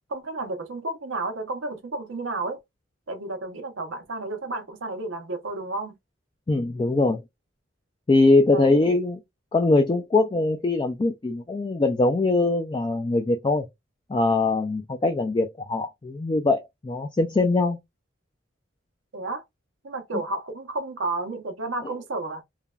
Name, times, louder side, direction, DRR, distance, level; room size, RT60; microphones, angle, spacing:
voice 1, 0.1-2.6 3.1-6.0 8.5-9.0 19.1-19.4 19.8-22.4, right 2 dB, 85° right, 0.8 m, -32 dB
voice 2, 6.5-7.2 8.1-9.2 9.5-13.7 14.1-17.8, left 2 dB, 25° left, 0.3 m, -22 dB
3.2 x 2.2 x 2.4 m
head